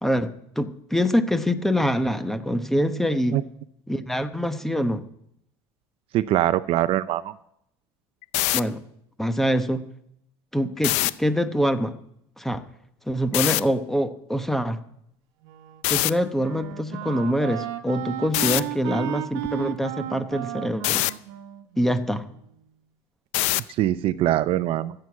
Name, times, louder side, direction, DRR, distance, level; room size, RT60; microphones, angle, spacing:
voice 1, 0.0-3.4 3.9-5.0 8.5-8.8 9.2-9.8 10.5-12.0 12.4-12.6 13.1-14.8 15.9-21.0 21.8-22.3, equal, 5° left, 10 dB, 0.9 m, -25 dB
voice 2, 6.1-7.3 23.8-24.9, right 13 dB, 50° right, 15 dB, 0.5 m, -22 dB
sound 1, 8.2-8.6 10.8-11.1 13.3-13.6 15.8-16.1 18.3-18.6 20.8-21.1 23.3-23.7, left 18 dB, 65° left, 0.5 m, -22 dB
Wind instrument woodwind instrument, 15.4-22.6, right 14 dB, 85° right, 1.1 m, -35 dB
14.5 x 7.8 x 8.4 m, 0.74 s
cardioid pair, 135°, 12 cm